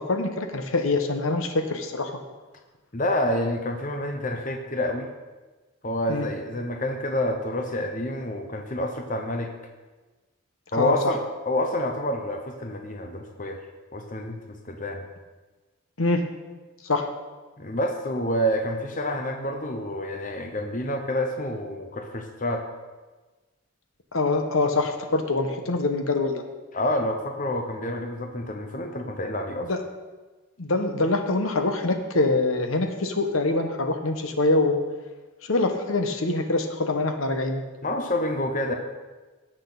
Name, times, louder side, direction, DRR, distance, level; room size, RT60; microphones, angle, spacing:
voice 1, 0.0-2.2 6.1-6.3 10.7-11.1 16.0-16.3 16.8-17.1 24.1-26.4 29.7-29.8 30.6-34.8 35.4-37.6, left 2 dB, 70° left, 6 dB, 1.1 m, -24 dB
voice 2, 2.9-5.1 5.8-9.5 10.7-13.6 13.9-15.1 17.6-22.6 26.7-29.7 37.8-38.7, left 1 dB, 35° left, 3 dB, 0.8 m, -28 dB
17.0 x 6.4 x 4.0 m, 1.2 s
head